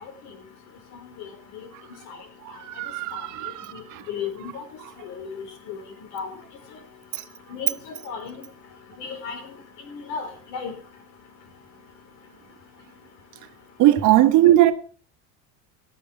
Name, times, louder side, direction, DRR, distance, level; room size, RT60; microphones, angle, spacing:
voice 1, 2.5-4.0 7.1-7.2 13.8-14.7, right 14 dB, 55° right, 1.3 m, -19 dB
voice 2, 4.1-4.6 5.0-5.8 6.1-6.3 7.5-7.8 8.1-8.4 9.0-9.4 10.1-10.7, left 6 dB, 75° left, 4.1 m, -33 dB
17.0 x 7.2 x 6.3 m
supercardioid pair, 120°, 37 cm